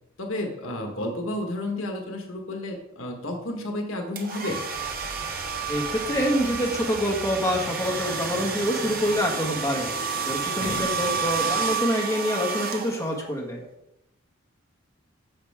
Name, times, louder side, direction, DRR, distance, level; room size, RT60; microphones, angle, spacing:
voice 1, 0.2-4.6 10.6-10.9, left 1 dB, 70° left, 2 dB, 1.6 m, -31 dB
sound 1, 4.1-13.3, right 5 dB, 45° right, 1.1 m, -30 dB
sound 2, 4.7-10.9, left 1 dB, 40° left, 3.9 m, -41 dB
voice 2, 5.7-13.6, equal, 15° left, -1 dB, 1.7 m, -26 dB
9.8 x 7.4 x 3.6 m, 0.85 s
head